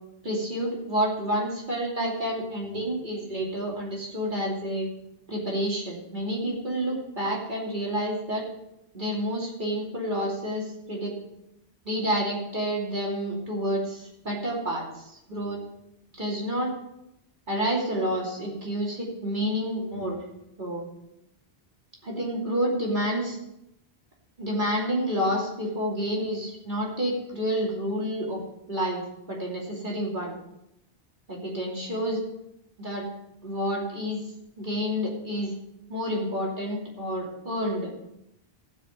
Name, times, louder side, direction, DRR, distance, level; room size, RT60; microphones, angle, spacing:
voice 1, 0.2-4.9 5.3-8.4 8.9-11.1 11.8-15.6 16.2-16.7 17.5-20.2 20.6-20.8 22.0-23.4 24.4-28.4 28.7-29.0 29.3-30.4 31.3-32.2 32.8-33.0 33.4-34.2 34.6-35.5 35.9-37.9, equal, 50° right, -3 dB, 3.0 m, -29 dB
15.0 x 5.4 x 8.2 m, 0.84 s
omnidirectional pair, 1.0 m